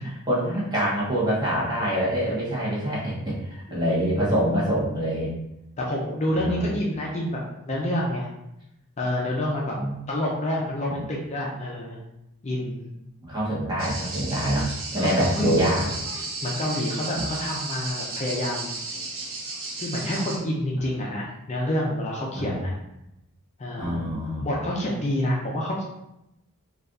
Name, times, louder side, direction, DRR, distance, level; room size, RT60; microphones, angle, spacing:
voice 1, 0.0-5.3 6.3-6.8 9.7-10.0 10.9-11.0 13.2-15.8 17.1-17.2 22.3-22.6 23.8-24.6, equal, 20° right, -6 dB, 1.0 m, -25 dB
voice 2, 5.8-8.3 9.0-9.8 10.1-12.0 12.4-12.9 15.0-15.6 16.4-18.8 19.8-22.7 23.6-24.0 24.4-25.8, left 1 dB, 30° left, -3 dB, 0.5 m, -28 dB
sound 1, 13.8-20.4, right 3 dB, 65° right, 0.7 m, -34 dB
4.3 x 2.4 x 2.5 m, 0.87 s
head